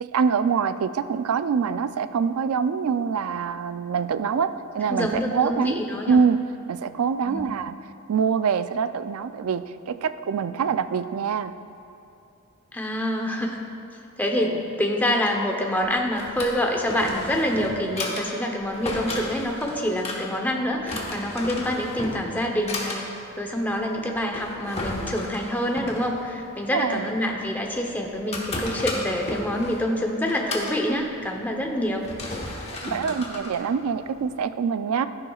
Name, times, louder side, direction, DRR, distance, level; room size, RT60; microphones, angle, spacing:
voice 1, 0.0-6.4 6.7-7.8 8.1-11.6 26.7-27.1 32.9-35.1, right 6 dB, 80° right, 12 dB, 0.4 m, -25 dB
voice 2, 4.9-6.2 7.2-7.5 12.7-13.6 14.2-23.1 23.4-32.1, left 1 dB, 10° left, 1 dB, 0.8 m, -26 dB
Drawer open or close, 15.8-34.4, left 1 dB, 30° left, 1.1 m, -35 dB
13.0 x 10.5 x 2.4 m, 2.6 s
head